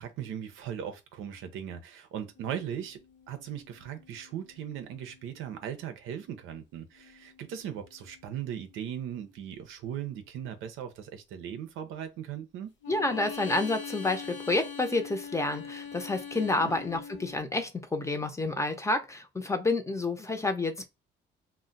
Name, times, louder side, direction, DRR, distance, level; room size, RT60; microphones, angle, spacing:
voice 1, 0.0-3.0 3.3-12.7 16.5-16.8, right 9 dB, 90° right, 0.5 m, -38 dB
sound 1, 2.4-5.6 6.9-9.3 12.8-17.4, left 6 dB, 65° left, 0.8 m, -44 dB
voice 2, 12.9-20.8, left 2 dB, 15° left, 0.6 m, -29 dB
2.2 x 2.1 x 3.8 m
cardioid pair, 90°, 20 cm